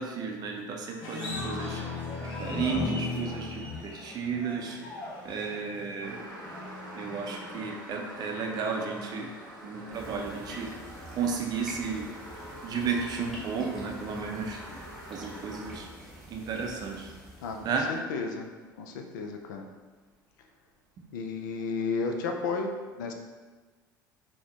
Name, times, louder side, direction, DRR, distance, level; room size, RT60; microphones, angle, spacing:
voice 1, 0.0-4.8 5.2-6.2 6.9-9.3 9.6-10.7 11.1-12.1 12.6-15.9 16.3-17.1 17.6-17.9, right 5 dB, 40° right, 1 dB, 0.5 m, -33 dB
sound 1, 1.0-7.7, left 3 dB, 45° left, 0.7 m, -37 dB
sound 2, 6.0-16.1 16.8-16.9 18.5-18.6 19.0-19.1 19.5-19.6 20.1-20.2, right 1 dB, 85° right, 0.6 m, -45 dB
sound 3, 9.9-18.0, equal, 5° left, 1.0 m, -46 dB
voice 2, 17.9-18.5 18.8-19.7 21.1-23.1, left 4 dB, 65° left, 4 dB, 0.4 m, -33 dB
4.0 x 2.1 x 2.8 m, 1.4 s
figure-of-eight pair, 65°, 11 cm